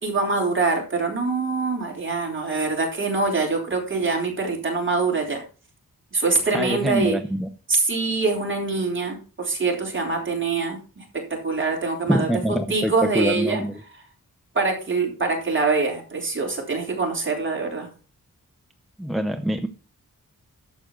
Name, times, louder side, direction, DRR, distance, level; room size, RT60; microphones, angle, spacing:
voice 1, 0.0-5.4 6.1-7.2 7.7-13.6 14.6-17.9, right 3 dB, 35° right, 0 dB, 3.5 m, -24 dB
voice 2, 6.5-7.5 12.1-13.8 19.0-19.7, equal, ahead, 7 dB, 0.6 m, -24 dB
11.5 x 7.5 x 3.8 m, 0.36 s
wide cardioid pair, 140°, 35 cm